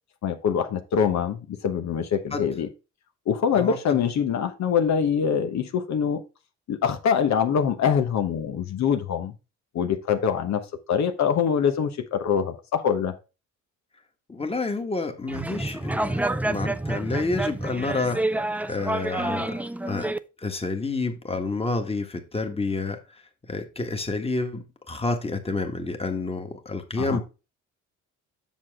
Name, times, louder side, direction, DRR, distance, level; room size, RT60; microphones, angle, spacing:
voice 1, 0.2-2.7 3.3-6.2 6.7-9.3 9.7-13.1 27.0-27.2, left 7 dB, 65° left, 1.1 m, -24 dB
voice 2, 14.3-18.2 18.6-19.6 19.9-20.1 20.4-23.0 23.4-27.2, left 3 dB, 20° left, 1.6 m, -29 dB
sound 1, 15.3-20.2, right 2 dB, 5° right, 0.4 m, -28 dB
7.4 x 6.2 x 3.6 m
cardioid pair, 90°, 30 cm